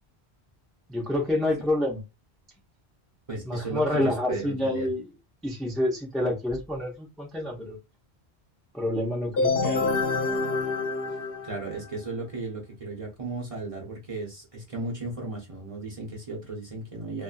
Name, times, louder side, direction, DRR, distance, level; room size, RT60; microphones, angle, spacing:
voice 1, 0.9-2.0 3.4-5.1 5.4-7.8 8.7-9.9, left 1 dB, ahead, 0.6 m, -28 dB
voice 2, 3.3-4.9 11.4-17.2, right 2 dB, 35° right, 0.9 m, -35 dB
sound 1, 9.4-12.0, left 3 dB, 60° left, 1.0 m, -27 dB
2.6 x 2.6 x 2.3 m
omnidirectional pair, 1.1 m